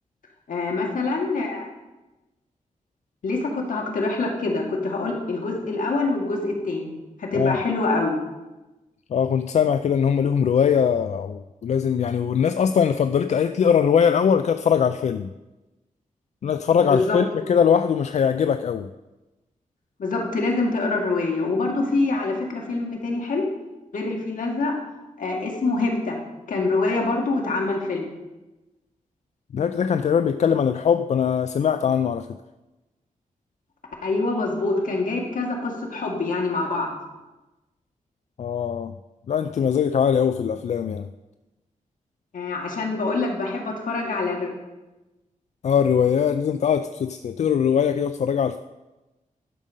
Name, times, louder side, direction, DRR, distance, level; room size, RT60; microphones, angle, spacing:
voice 1, 0.5-1.7 3.2-6.9 7.2-8.2 16.9-17.2 20.0-23.4 23.9-24.8 25.2-26.2 26.5-28.1 34.0-36.9 42.3-44.5, left 3 dB, 75° left, 0 dB, 2.1 m, -25 dB
voice 2, 9.1-15.3 16.4-18.9 29.5-32.3 38.4-38.9 39.3-41.1 45.6-48.6, left 7 dB, 55° left, 10 dB, 0.4 m, -21 dB
11.0 x 5.4 x 6.4 m, 1.1 s
wide cardioid pair, 155°, 14 cm